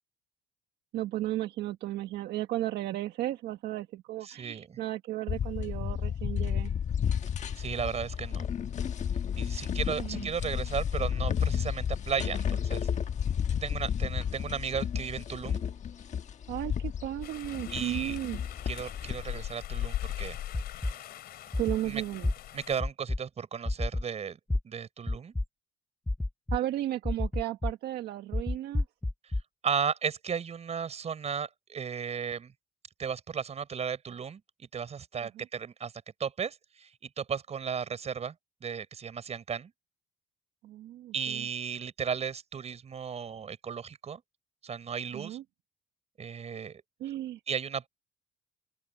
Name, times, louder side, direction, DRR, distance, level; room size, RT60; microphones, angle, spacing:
voice 1, 0.9-6.7 10.0-10.3 16.5-18.4 21.6-22.3 26.5-28.8 35.3-35.5 40.6-41.5 45.1-45.4 47.0-47.4, right 14 dB, 75° right, 1.5 m, -34 dB
voice 2, 4.2-4.8 7.6-8.5 9.3-12.9 13.6-15.6 17.7-18.2 18.7-20.4 21.8-22.0 22.5-24.4 24.6-25.3 29.6-32.5 33.0-35.9 36.2-36.9 37.2-38.3 38.6-39.7 41.1-44.2 44.6-45.4 46.2-46.8 47.5-47.9, right 7 dB, 40° right, 6.1 m, -35 dB
sound 1, 5.3-19.5, left 8 dB, 45° left, 1.3 m, -32 dB
sound 2, 17.2-22.8, left 12 dB, 65° left, 3.4 m, -40 dB
sound 3, 20.5-20.9 21.5-21.8 22.2-22.3 22.8-23.2 23.7-24.0 24.5-24.6 25.1-25.5 26.1-26.6 27.1-27.7 28.3-29.4, left 2 dB, 10° left, 0.6 m, -29 dB
open air
cardioid pair, 110°, 17 cm